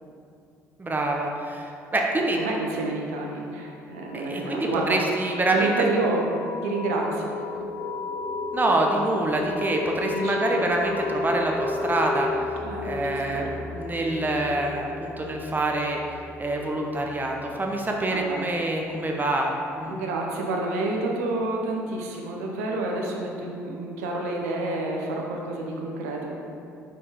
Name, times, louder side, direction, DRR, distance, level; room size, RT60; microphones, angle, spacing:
voice 1, 0.8-2.4 4.1-5.7 8.5-12.3 12.8-16.0 16.4-19.5 19.7-20.0, right 2 dB, 25° right, 1 dB, 0.7 m, -26 dB
voice 2, 2.4-5.0 5.5-6.3 6.6-7.3 10.1-10.6 12.6-13.5 18.1-18.5 19.9-26.6, right 2 dB, 70° right, 0 dB, 0.7 m, -29 dB
sound 1, 3.6-18.0, left 3 dB, 55° left, 1.0 m, -34 dB
5.4 x 4.3 x 4.8 m, 2.5 s
figure-of-eight pair, 50°, 8 cm